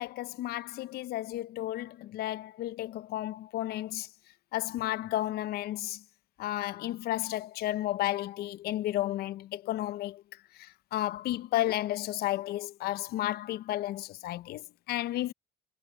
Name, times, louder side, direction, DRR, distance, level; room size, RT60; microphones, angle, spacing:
voice 1, 0.0-4.1 4.5-6.0 6.4-10.2 10.6-15.3, left 14 dB, 70° left, 0.5 m, -33 dB
cardioid pair, 110°, 17 cm